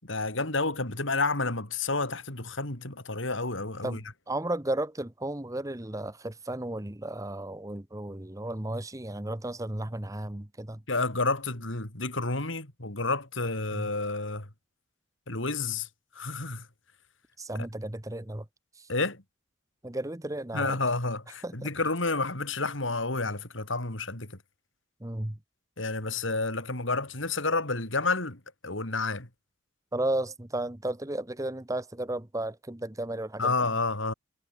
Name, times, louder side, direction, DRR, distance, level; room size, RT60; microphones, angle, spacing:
voice 1, 0.0-4.0 10.9-14.5 15.3-15.9 16.1-16.7 18.9-19.2 20.5-24.4 25.8-29.3 33.4-34.1, left 3 dB, 70° left, 4.4 m, -30 dB
voice 2, 3.8-10.8 13.7-13.9 17.4-18.4 18.8-18.9 19.8-20.8 21.4-21.5 25.0-25.4 29.9-33.5, right 1 dB, 15° right, 1.1 m, -34 dB
head